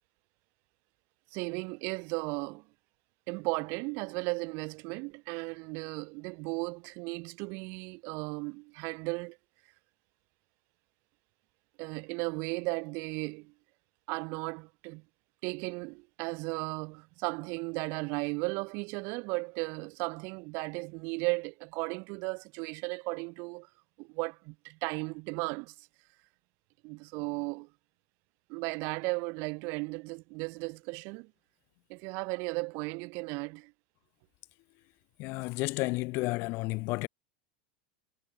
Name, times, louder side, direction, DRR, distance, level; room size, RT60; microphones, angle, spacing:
voice 1, 1.3-2.6 3.3-9.4 11.8-13.5 14.1-15.0 15.4-23.7 24.0-25.9 26.8-27.7 28.5-31.3 31.9-33.7, right 30 dB, 55° right, 0.6 m, -35 dB
voice 2, 35.2-37.1, left 24 dB, 50° left, 0.6 m, -31 dB
hypercardioid pair, 115°, 5 cm